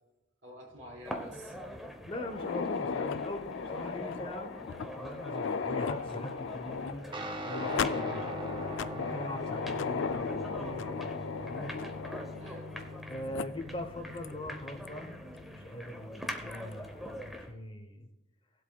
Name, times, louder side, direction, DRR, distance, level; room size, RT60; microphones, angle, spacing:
voice 1, 0.4-2.1 12.4-12.9, equal, 80° right, -1 dB, 3.6 m, -49 dB
sound 1, 1.0-17.5, equal, ahead, 0.9 m, -44 dB
voice 2, 2.0-4.5 4.8-11.7 13.0-15.1 15.5-18.1, left 1 dB, 25° left, 6 dB, 0.9 m, -42 dB
sound 2, 2.2-13.0 13.3-13.4 14.2-14.3 14.9-15.0 16.3-16.6, left 5 dB, 80° left, 0.4 m, -36 dB
Guitar, 7.1-16.8, equal, 25° right, 0.6 m, -43 dB
18.0 x 8.0 x 2.3 m, 0.96 s
head